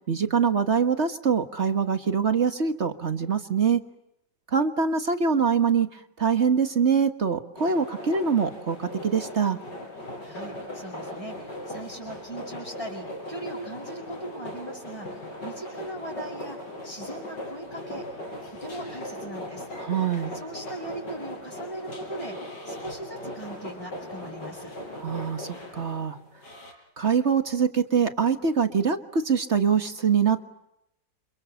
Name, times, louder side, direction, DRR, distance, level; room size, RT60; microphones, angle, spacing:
voice 1, 0.0-3.8 4.5-9.6 19.8-20.3 25.0-26.2 27.0-30.5, right 6 dB, 40° right, 8 dB, 1.7 m, -24 dB
sound 1, 7.6-26.7, left 1 dB, 80° left, 7.0 m, -39 dB
voice 2, 10.2-16.6 16.8-18.1 18.5-19.7 20.3-24.7, right 1 dB, 15° left, -3 dB, 7.1 m, -39 dB
30.0 x 28.0 x 7.1 m, 0.83 s
omnidirectional pair, 1.9 m